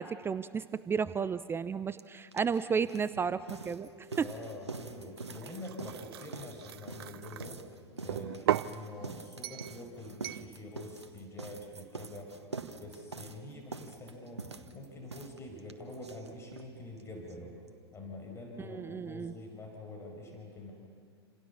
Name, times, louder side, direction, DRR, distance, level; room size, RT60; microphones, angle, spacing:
voice 1, 0.0-3.9 4.2-4.3 18.6-19.3, right 6 dB, 15° right, 14 dB, 0.6 m, -33 dB
sound 1, 2.0-2.1 2.3-16.7 17.0-17.1 17.3-17.4 17.7-17.8, right 4 dB, 85° right, 1.5 m, -45 dB
sound 2, 2.7-7.6, left 1 dB, 60° left, 4.8 m, -57 dB
voice 2, 4.1-7.6 8.0-12.3 12.7-14.5 14.7-17.5 17.9-20.7, left 2 dB, 20° left, 2 dB, 5.6 m, -46 dB
sound 3, 5.2-7.5 8.1-8.8 9.4-9.8 10.2-10.5, right 12 dB, 60° right, 0.7 m, -36 dB
28.5 x 28.0 x 7.1 m, 2.2 s
figure-of-eight pair, 95°, 14 cm